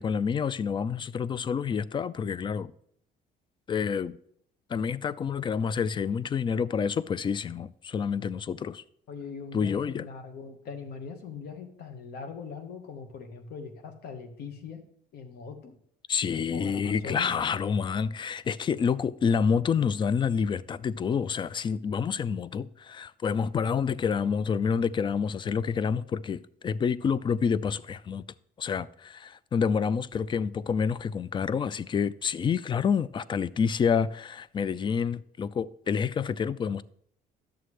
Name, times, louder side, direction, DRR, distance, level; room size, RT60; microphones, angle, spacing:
voice 1, 0.0-2.7 3.7-4.2 4.7-8.8 9.5-10.0 16.1-28.2 28.6-36.8, left 6 dB, 30° left, 0.4 m, -28 dB
voice 2, 9.1-14.8 15.1-15.7 16.5-17.3, left 5 dB, 70° left, 1.4 m, -41 dB
11.0 x 6.9 x 3.2 m
cardioid pair, 110°, 17 cm